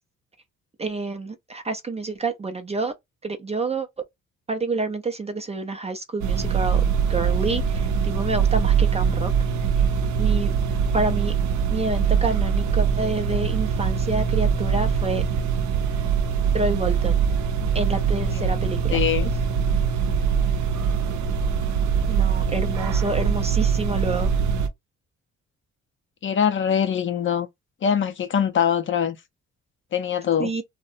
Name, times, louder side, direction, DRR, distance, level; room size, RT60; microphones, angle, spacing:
voice 1, 0.8-2.9 3.2-3.9 4.5-6.8 7.1-9.3 10.2-10.5 10.9-11.3 11.7-15.2 16.5-17.2 17.7-19.0 22.1-24.3 30.4-30.6, right 3 dB, 20° right, 0.4 m, -28 dB
sound 1, 6.2-24.7, right 6 dB, 70° right, 0.6 m, -22 dB
voice 2, 18.9-19.3 26.2-27.5 27.8-29.2 29.9-30.5, left 8 dB, 40° left, 0.5 m, -23 dB
2.6 x 2.1 x 2.4 m
cardioid pair, 90°, 30 cm